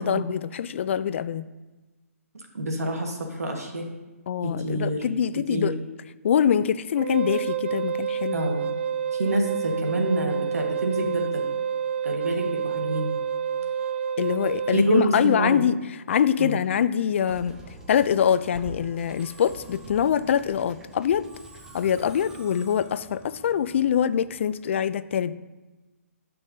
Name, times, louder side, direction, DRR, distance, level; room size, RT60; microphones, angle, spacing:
voice 1, 0.0-1.5 4.3-5.8 6.2-8.5 14.2-15.8 16.1-17.6 17.9-21.3 21.7-25.4, left 8 dB, 55° left, 16 dB, 0.4 m, -24 dB
voice 2, 2.3-3.9 4.4-5.2 5.5-5.7 8.3-8.7 9.1-11.4 12.0-13.1 14.7-15.6 16.4-16.7, right 1 dB, 90° right, 2 dB, 1.5 m, -27 dB
Wind instrument woodwind instrument, 7.0-14.8, right 8 dB, 50° right, 0.4 m, -28 dB
Musical instrument, 17.3-24.6, right 2 dB, 10° right, 0.7 m, -46 dB
10.5 x 5.4 x 2.7 m, 1.2 s
hypercardioid pair, 145°, 8 cm